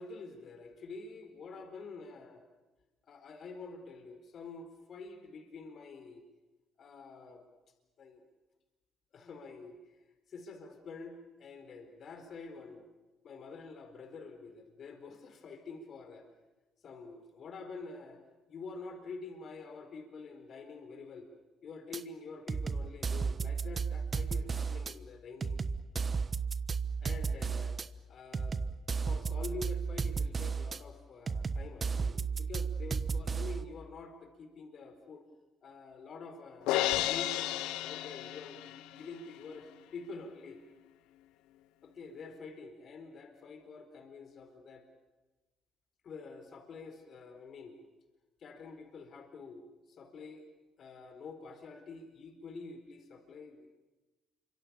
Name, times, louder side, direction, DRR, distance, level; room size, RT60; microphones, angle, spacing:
voice 1, 0.0-2.3 3.1-6.2 6.8-7.4 8.0-8.2 9.1-9.8 10.3-12.9 13.2-16.2 16.8-18.2 18.5-21.3 21.6-25.6 27.0-27.8 28.1-28.6 29.0-35.3 35.6-36.8 37.1-40.6 41.8-44.9 46.0-47.8 48.4-49.6 49.9-50.4 50.8-53.7, left 4 dB, 60° left, 7 dB, 4.4 m, -47 dB
sound 1, 21.9-22.0 22.5-24.9 25.4-27.9 28.3-30.8 31.3-33.6, right 5 dB, 40° right, 1.1 m, -33 dB
Crash cymbal, 36.7-38.9, left 14 dB, 90° left, 0.9 m, -32 dB
28.0 x 25.0 x 7.1 m, 1.1 s
supercardioid pair, 70°, 0 cm